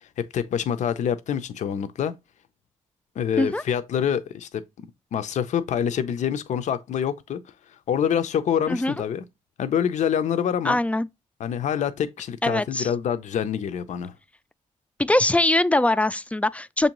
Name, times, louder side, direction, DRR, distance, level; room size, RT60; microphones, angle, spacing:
voice 1, 0.0-2.1 3.2-4.6 5.1-7.4 7.7-9.2 9.6-10.8 11.4-14.1, left 8 dB, 65° left, 0.5 m, -26 dB
voice 2, 10.6-11.1 12.4-12.9 15.0-16.9, left 2 dB, 10° left, 0.3 m, -22 dB
6.7 x 2.6 x 2.9 m
supercardioid pair, 55°, 14 cm